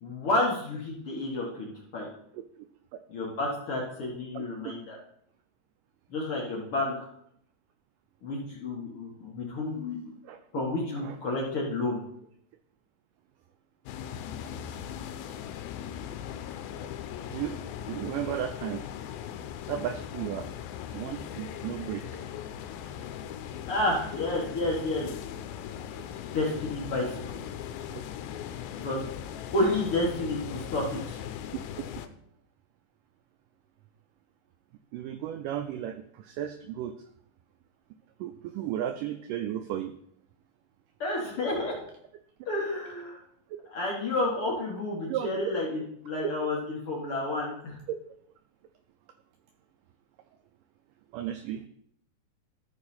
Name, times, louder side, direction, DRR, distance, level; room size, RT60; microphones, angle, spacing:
voice 1, 0.0-2.1 3.1-5.0 6.1-6.9 8.2-10.1 10.5-12.0 23.7-25.1 26.3-27.4 28.8-29.1 29.5-31.2 41.0-41.8 42.5-43.2 43.7-47.8, left 2 dB, 55° left, -3 dB, 1.7 m, -30 dB
voice 2, 2.3-2.7 4.3-4.7 10.2-10.4 11.0-11.2 14.8-14.9 17.3-17.6 17.9-18.8 19.7-20.6 20.9-22.2 27.9-28.0 31.8-31.9 34.9-36.9 38.2-39.9 45.1-45.5 46.2-46.3 47.9-48.0 51.1-51.6, right 11 dB, 85° right, 8 dB, 1.9 m, -34 dB
sound 1, 13.9-32.1, left 9 dB, 90° left, 2.4 m, -39 dB
13.5 x 4.8 x 4.2 m, 0.69 s
omnidirectional pair, 4.2 m